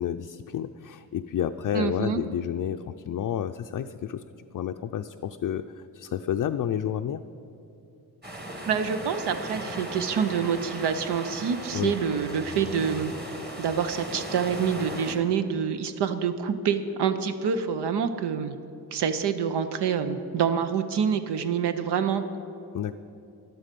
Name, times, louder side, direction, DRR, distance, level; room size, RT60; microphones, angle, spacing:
voice 1, 0.0-4.2 4.5-7.2 11.7-11.9 22.7-22.9, left 9 dB, 55° left, 6 dB, 0.4 m, -30 dB
voice 2, 1.7-2.2 8.5-13.1 13.6-18.6 18.9-22.2, right 7 dB, 90° right, 9 dB, 0.7 m, -27 dB
sound 1, 8.2-15.2, right 1 dB, 25° right, 1.7 m, -37 dB
12.5 x 11.5 x 5.2 m, 2.9 s
wide cardioid pair, 105°, 39 cm